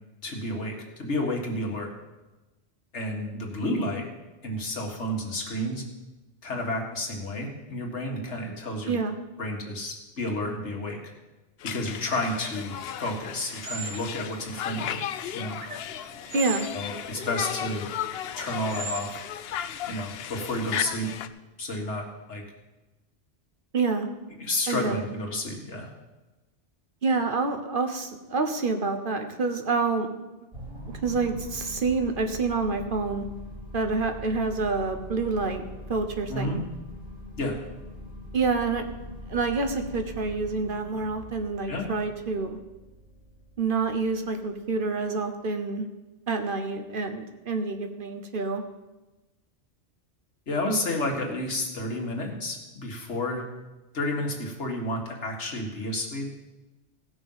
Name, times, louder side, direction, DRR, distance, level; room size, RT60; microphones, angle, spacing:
voice 1, 0.2-0.7 1.0-1.9 2.9-4.0 4.4-5.8 6.4-9.0 9.4-11.0 11.6-15.0 15.3-15.6 16.7-17.9 18.4-19.2 19.9-21.1 21.6-22.4 24.4-25.9 36.3-36.6 37.4-37.5 41.7-41.9 50.5-53.4 53.9-56.3, left 1 dB, 85° left, 0 dB, 2.1 m, -31 dB
voice 2, 8.9-9.2 16.3-16.7 23.7-24.1 24.7-25.0 27.0-30.1 30.9-33.2 33.7-35.6 35.9-36.6 38.3-38.8 39.3-42.6 43.6-45.9 46.3-48.6, right 4 dB, 50° right, 6 dB, 1.1 m, -27 dB
Conversation, 11.6-21.3, left 10 dB, 65° left, 0.8 m, -35 dB
sound 1, 12.8-19.3, right 6 dB, 75° right, 1.3 m, -41 dB
sound 2, 30.5-45.0, left 1 dB, 35° right, 3.1 m, -42 dB
16.5 x 6.1 x 5.5 m, 1.1 s
omnidirectional pair, 1.2 m